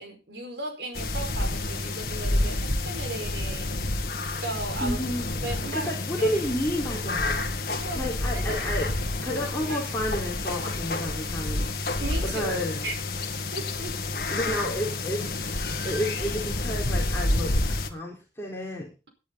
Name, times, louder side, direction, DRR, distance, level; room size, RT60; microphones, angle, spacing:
voice 1, 0.0-3.8 4.4-5.0 5.4-5.9 6.2-6.3 7.7-8.5 9.3-9.9 12.0-12.5 12.8-13.0 13.5-14.0, right 2 dB, 70° right, 5 dB, 4.9 m, -36 dB
sound 1, 1.0-17.9, left 2 dB, 55° left, 1.8 m, -29 dB
voice 2, 4.8-5.2 5.7-7.4 7.7-8.9 9.2-12.8 14.3-15.4 15.8-18.9, equal, 15° left, -3 dB, 4.1 m, -31 dB
19.0 x 10.5 x 4.1 m, 0.32 s
head